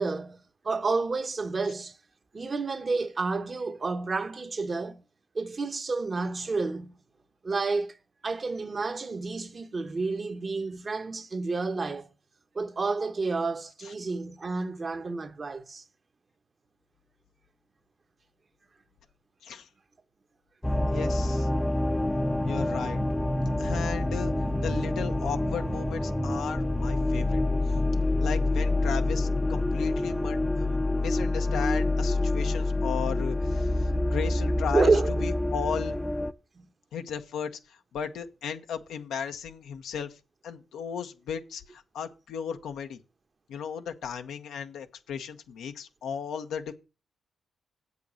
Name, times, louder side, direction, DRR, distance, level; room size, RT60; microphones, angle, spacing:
voice 1, 0.0-2.0 2.3-5.0 5.3-6.9 7.4-8.0 8.2-12.1 12.5-15.8 34.7-35.1 36.5-36.7, right 3 dB, 45° right, 1.2 m, -30 dB
sound 1, 20.6-36.3, left 2 dB, 10° left, 0.7 m, -27 dB
voice 2, 20.9-21.5 22.5-23.0 23.6-24.3 24.6-27.4 28.2-34.9 35.2-36.0 36.9-43.0 43.5-46.7, left 7 dB, 80° left, 1.0 m, -36 dB
8.1 x 6.8 x 6.3 m
supercardioid pair, 50°, 0 cm